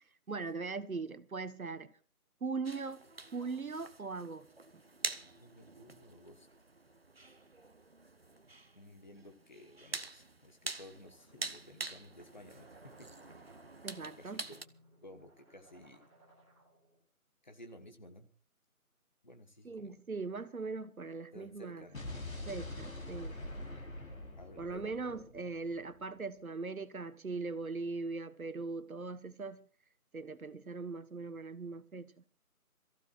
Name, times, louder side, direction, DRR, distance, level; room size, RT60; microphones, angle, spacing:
voice 1, 0.3-1.9 2.4-3.0 3.3-4.5 13.8-14.4 19.6-21.9 22.5-23.4 24.6-29.6 30.1-32.2, right 4 dB, 65° right, 1.4 m, -40 dB
sound 1, 2.6-14.7, right 2 dB, 40° right, 0.7 m, -46 dB
voice 2, 5.3-6.5 8.7-13.5 14.2-14.6 15.0-16.0 17.4-18.3 19.2-20.0 21.3-22.1 24.4-25.2, left 1 dB, 30° left, 1.3 m, -55 dB
sound 2, 11.0-17.0, right 1 dB, 20° right, 3.4 m, -64 dB
Explosion, 21.9-26.0, left 1 dB, 65° left, 4.2 m, -44 dB
27.0 x 15.0 x 2.5 m
figure-of-eight pair, 170°, 45 cm